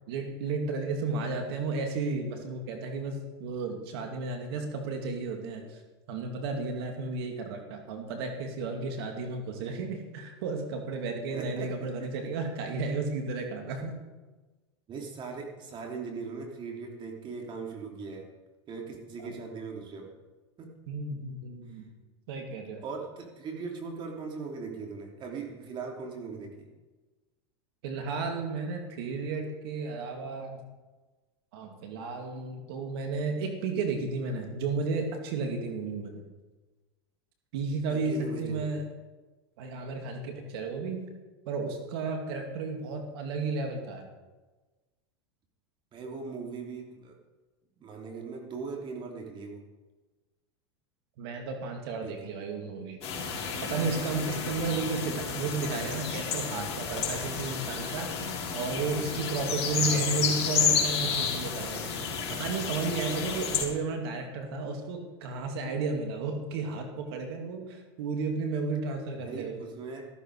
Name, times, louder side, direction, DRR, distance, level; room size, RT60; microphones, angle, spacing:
voice 1, 0.1-5.8 6.1-14.0 19.2-19.3 20.9-21.9 22.3-22.8 27.8-30.6 31.5-36.2 37.5-38.9 39.6-41.0 41.5-44.1 51.2-53.0 53.6-58.1 58.5-61.8 62.3-69.6, right 4 dB, 65° right, 4 dB, 2.6 m, -33 dB
voice 2, 11.3-12.1 14.9-18.3 18.7-20.1 20.6-20.7 22.8-26.7 37.9-38.8 45.9-47.1 47.8-49.6 52.0-52.3 59.7-60.1 60.5-60.8 69.2-70.1, right 4 dB, 35° right, 1 dB, 3.2 m, -40 dB
sound 1, 53.0-63.7, left 6 dB, 45° left, 4.1 m, -31 dB
13.5 x 13.5 x 4.9 m, 1.2 s
hypercardioid pair, 100°, 14 cm